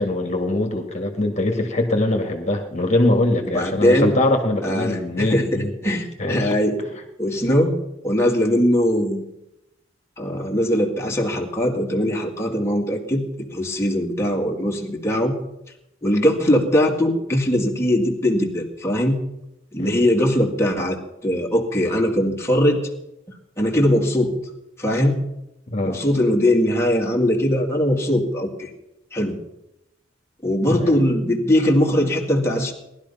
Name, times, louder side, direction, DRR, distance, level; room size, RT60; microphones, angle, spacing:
voice 1, 0.0-5.7 6.2-6.5 19.8-20.0 25.7-26.0 30.7-30.9, left 1 dB, 35° left, 3 dB, 2.0 m, -22 dB
voice 2, 3.5-4.2 4.6-7.8 8.0-9.2 10.2-15.3 16.0-19.2 19.7-22.8 23.6-24.3 24.8-25.2 25.8-28.7 29.1-29.4 30.4-32.7, equal, 15° left, -1 dB, 2.1 m, -20 dB
18.5 x 12.0 x 5.6 m, 0.87 s
head